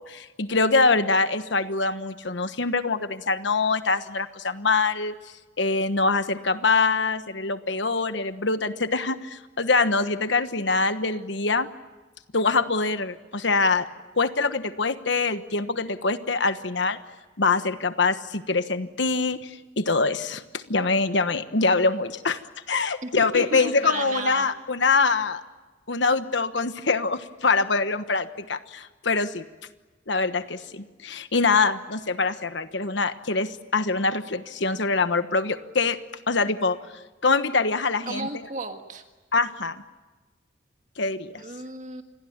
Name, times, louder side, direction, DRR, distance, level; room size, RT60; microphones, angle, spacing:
voice 1, 0.0-5.1 5.6-11.7 12.3-13.8 14.1-17.0 17.4-19.5 19.8-22.4 22.7-25.4 25.9-29.4 30.1-36.0 36.3-36.8 37.2-38.3 39.3-39.8 41.0-41.4, left 4 dB, 65° left, 11 dB, 1.3 m, -24 dB
voice 2, 23.0-24.5 38.1-39.0 41.4-42.0, right 3 dB, 40° right, 5 dB, 1.6 m, -34 dB
28.0 x 22.0 x 8.8 m, 1.2 s
head